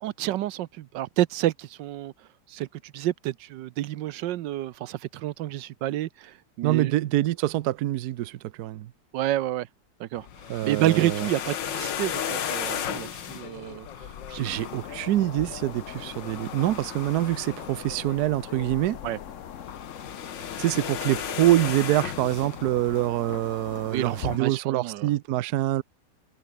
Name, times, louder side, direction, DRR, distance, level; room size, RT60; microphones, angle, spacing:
voice 1, 0.0-2.1 2.5-6.9 9.1-9.7 10.0-10.3 10.6-14.8 19.0-19.2 23.9-25.1, right 14 dB, 85° right, 1.4 m, -29 dB
voice 2, 6.6-8.9 10.5-11.3 14.4-19.0 20.6-25.8, right 14 dB, 70° right, 1.1 m, -25 dB
sound 1, 10.2-23.1, left 9 dB, 85° left, 2.0 m, -36 dB
sound 2, 14.4-24.4, left 9 dB, 50° left, 1.1 m, -41 dB
omnidirectional pair, 1.9 m